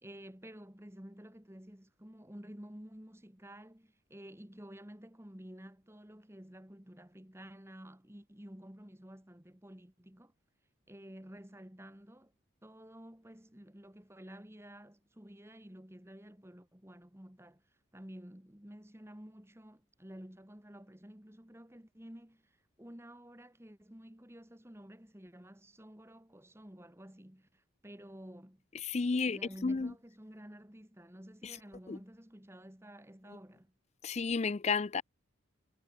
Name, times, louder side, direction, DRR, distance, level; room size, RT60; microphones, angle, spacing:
voice 1, 0.0-10.3 10.9-12.3 12.6-17.6 17.9-28.6 29.3-33.7, equal, 10° right, 1.7 m, -52 dB
voice 2, 28.9-29.9 31.4-31.5 31.9-32.0 34.0-35.0, left 4 dB, 30° left, 0.4 m, -32 dB
head